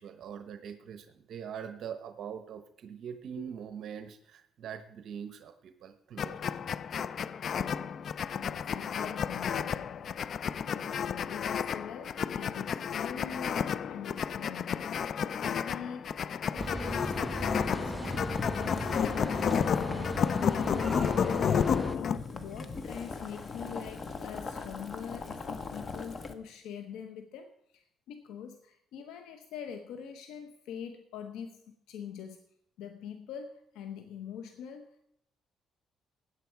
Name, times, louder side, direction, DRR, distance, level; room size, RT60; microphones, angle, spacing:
voice 1, 0.0-6.5, right 8 dB, 65° right, 8 dB, 1.0 m, -43 dB
sound 1, 6.2-22.2, left 7 dB, 55° left, 0.5 m, -31 dB
voice 2, 7.5-8.0 8.3-10.2 10.7-32.4 32.8-35.0, left 8 dB, 90° left, 7 dB, 1.0 m, -44 dB
sound 2, 16.6-22.0, right 1 dB, 15° right, 0.5 m, -38 dB
Boiling, 17.0-26.3, left 4 dB, 35° left, 1.3 m, -41 dB
16.5 x 9.8 x 4.7 m, 0.72 s
cardioid pair, 100°, 0 cm